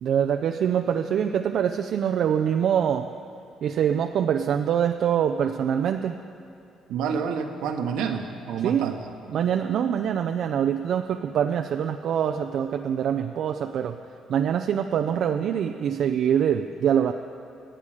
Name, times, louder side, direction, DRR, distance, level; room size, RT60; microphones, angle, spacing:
voice 1, 0.0-3.1 3.6-6.2 8.6-9.0 9.3-14.0 14.3-17.1, right 8 dB, 65° right, 6 dB, 0.5 m, -24 dB
voice 2, 6.9-9.1, right 6 dB, 80° right, 5 dB, 1.2 m, -28 dB
24.0 x 8.9 x 5.0 m, 2.7 s
supercardioid pair, 80°, 0 cm